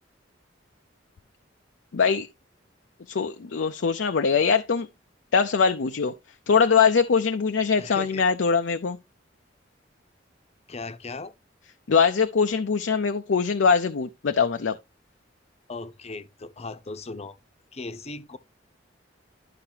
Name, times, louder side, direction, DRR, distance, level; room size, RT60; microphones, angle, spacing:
voice 1, 1.9-2.3 3.1-4.9 5.3-6.1 6.5-9.0 11.9-14.8, left 5 dB, 70° left, 0.5 m, -22 dB
voice 2, 7.8-8.2 10.7-11.3 15.7-17.4 17.7-18.4, left 3 dB, 35° left, 0.8 m, -37 dB
11.5 x 5.8 x 2.8 m
head